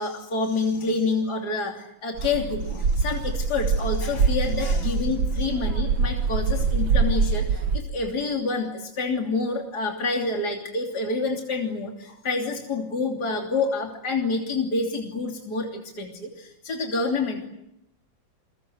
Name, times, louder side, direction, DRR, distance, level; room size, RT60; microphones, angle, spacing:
voice 1, 0.0-17.5, left 3 dB, 55° left, 1 dB, 3.7 m, -28 dB
sound 1, 2.2-7.8, right 4 dB, 85° right, 2.4 m, -24 dB
29.0 x 22.5 x 7.9 m, 0.80 s
omnidirectional pair, 2.1 m